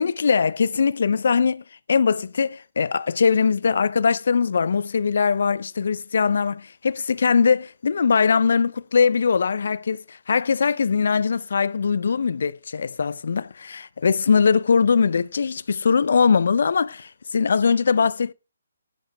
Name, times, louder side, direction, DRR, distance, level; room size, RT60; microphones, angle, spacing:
voice 1, 0.0-18.3, left 5 dB, 60° left, 0.6 m, -21 dB
17.0 x 11.5 x 2.3 m
figure-of-eight pair, 140°, 0 cm